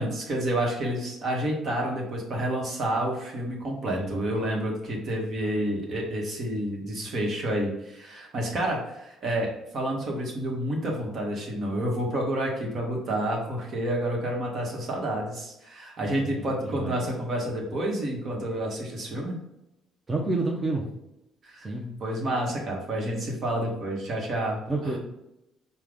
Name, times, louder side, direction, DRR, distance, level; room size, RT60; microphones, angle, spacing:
voice 1, 0.0-19.3 21.4-21.7 22.0-25.0, right 1 dB, 55° right, -1 dB, 1.2 m, -29 dB
voice 2, 3.9-4.3 16.2-17.0 20.1-20.8 21.6-21.9 24.7-25.0, right 2 dB, 25° right, -1 dB, 0.7 m, -29 dB
4.7 x 2.3 x 3.5 m, 0.89 s
hypercardioid pair, 55°, 0 cm